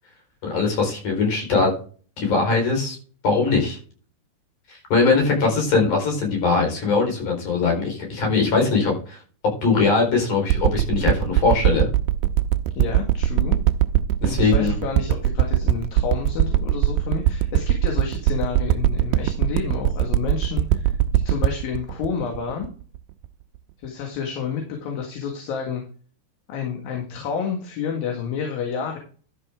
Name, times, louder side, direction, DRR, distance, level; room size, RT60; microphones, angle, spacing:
voice 1, 0.4-1.7 2.2-3.0 3.2-3.8 4.7-9.2 9.6-11.9 14.2-14.7, left 4 dB, 45° left, 1 dB, 5.7 m, -21 dB
sound 1, 10.5-23.3 23.8-23.9, right 13 dB, 80° right, 2.6 m, -20 dB
voice 2, 12.8-13.6 14.3-22.7 23.8-25.8 26.5-29.0, left 6 dB, 60° left, 2 dB, 3.3 m, -30 dB
12.5 x 6.9 x 3.6 m, 0.39 s
omnidirectional pair, 5.0 m